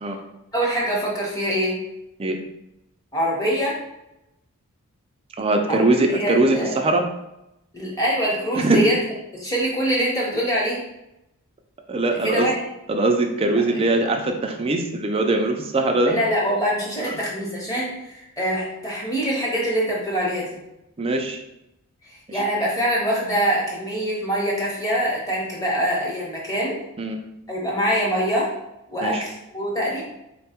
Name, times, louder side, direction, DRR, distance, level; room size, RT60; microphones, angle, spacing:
voice 1, 0.5-1.8 3.1-3.8 5.7-6.7 7.7-9.0 9.4-10.8 12.2-12.6 16.1-20.6 22.3-26.8 27.5-28.5 28.9-30.0, equal, 15° left, -4 dB, 1.0 m, -24 dB
voice 2, 5.4-7.1 8.5-8.9 11.9-12.5 12.9-16.2 17.1-17.2 21.0-21.4 22.3-22.4 27.0-27.2 29.0-29.3, right 2 dB, 25° right, 3 dB, 0.4 m, -21 dB
4.1 x 2.3 x 4.3 m, 0.87 s
head